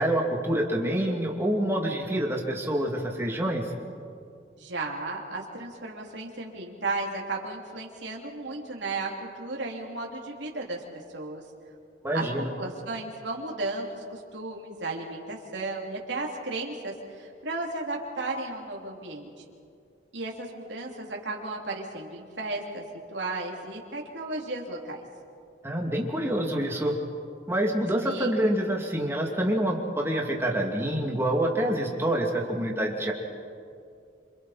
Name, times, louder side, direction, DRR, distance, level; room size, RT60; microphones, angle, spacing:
voice 1, 0.0-3.7 12.0-12.5 25.6-27.0 27.5-33.1, right 1 dB, 15° right, -1 dB, 2.6 m, -27 dB
voice 2, 4.6-10.8 11.1-11.4 12.1-12.2 12.6-19.4 20.1-22.8 23.1-25.0 28.0-28.4, right 2 dB, 80° right, -1 dB, 2.9 m, -34 dB
27.0 x 27.0 x 4.3 m, 2.4 s
head